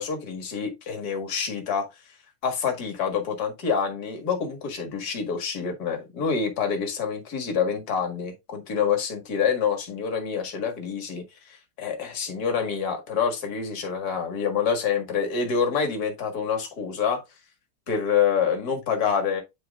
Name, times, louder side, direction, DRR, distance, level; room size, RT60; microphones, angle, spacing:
voice 1, 0.0-1.9 2.4-17.2 17.9-19.4, left 6 dB, 45° left, 2.2 m, -27 dB
9.8 x 4.6 x 2.3 m
omnidirectional pair, 2.4 m